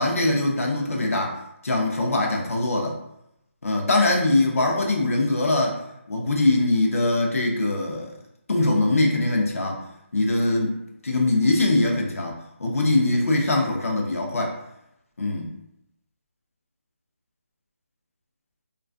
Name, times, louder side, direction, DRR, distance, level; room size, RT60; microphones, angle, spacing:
voice 1, 0.0-1.3 1.6-3.0 3.6-5.8 6.1-8.1 8.5-9.8 10.1-10.8 11.0-14.5 15.2-15.5, left 2 dB, 85° left, 0 dB, 0.5 m, -22 dB
2.4 x 2.3 x 2.3 m, 0.81 s
figure-of-eight pair, 170°, 7 cm